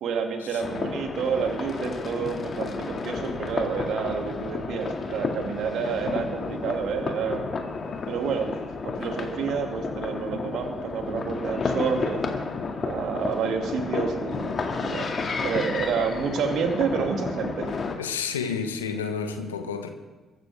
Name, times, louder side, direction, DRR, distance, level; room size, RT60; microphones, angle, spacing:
voice 1, 0.0-7.4 8.1-8.5 8.8-12.2 12.8-15.1 15.4-17.8, right 6 dB, 60° right, 4 dB, 2.1 m, -29 dB
sound 1, 0.6-18.0, left 4 dB, 45° left, 2.1 m, -31 dB
voice 2, 18.0-19.9, left 6 dB, 85° left, 7 dB, 1.1 m, -30 dB
22.5 x 11.5 x 3.4 m, 1.2 s
figure-of-eight pair, 45°, 0 cm